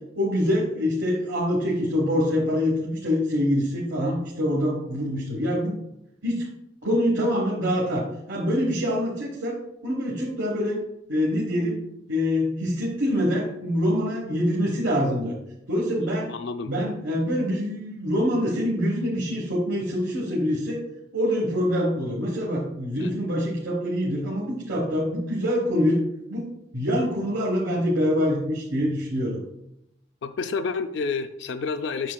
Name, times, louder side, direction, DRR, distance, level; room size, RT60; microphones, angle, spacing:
voice 1, 0.2-5.7 6.2-6.5 6.8-9.6 9.8-10.8 11.1-11.8 12.1-15.3 15.7-16.3 16.7-20.8 21.1-26.0 26.3-26.5 26.7-29.4, equal, 85° right, -3 dB, 1.2 m, -25 dB
voice 2, 16.3-16.7 23.0-23.2 30.2-32.1, left 4 dB, 75° left, 9 dB, 0.4 m, -29 dB
7.3 x 7.0 x 2.3 m, 0.82 s
head